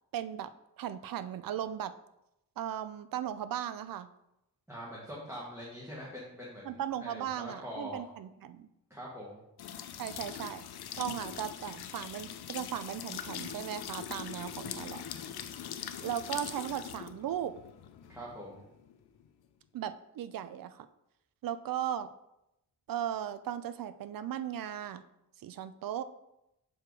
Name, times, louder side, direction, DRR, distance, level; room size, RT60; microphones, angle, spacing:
voice 1, 0.1-0.5 0.8-1.9 2.6-4.1 6.7-8.7 10.0-10.6 11.0-15.0 16.0-17.5 19.7-20.9 21.4-22.1 22.9-25.0 25.4-26.0, right 10 dB, 65° right, 13 dB, 0.5 m, -37 dB
voice 2, 4.7-8.0 8.9-9.4 18.1-18.6, equal, 5° right, -7 dB, 1.4 m, -43 dB
sound 1, 9.6-19.3, left 9 dB, 90° left, 0.6 m, -42 dB
6.4 x 4.8 x 4.6 m, 0.86 s
wide cardioid pair, 150°, 37 cm